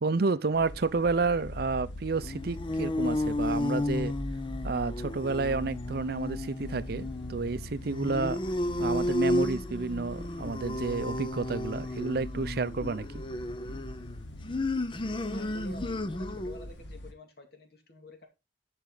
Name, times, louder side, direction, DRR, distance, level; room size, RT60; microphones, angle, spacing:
voice 1, 0.0-4.1 4.6-8.4 8.8-13.2, right 3 dB, 55° right, 0.6 m, -30 dB
sound 1, 0.5-17.1, left 1 dB, 80° left, 1.5 m, -42 dB
sound 2, 2.2-16.7, left 1 dB, 25° left, 0.6 m, -33 dB
voice 2, 15.3-18.3, left 1 dB, 55° left, 2.4 m, -49 dB
10.5 x 5.5 x 3.9 m
head